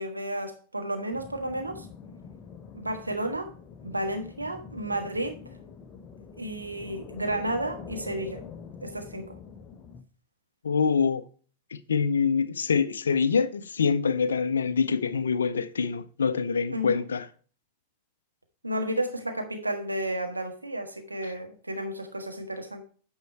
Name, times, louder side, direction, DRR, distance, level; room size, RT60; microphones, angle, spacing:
voice 1, 0.0-1.9 2.7-3.5 3.8-5.4 6.4-8.4 8.8-9.4 16.7-17.0 18.6-22.8, right 1 dB, 85° right, 1.5 m, -32 dB
sound 1, 1.1-10.0, left 6 dB, 30° left, 0.8 m, -45 dB
voice 2, 10.6-11.2 11.7-17.3 21.2-21.3, left 5 dB, 70° left, 0.5 m, -25 dB
9.4 x 5.5 x 4.4 m
figure-of-eight pair, 90°, 0 cm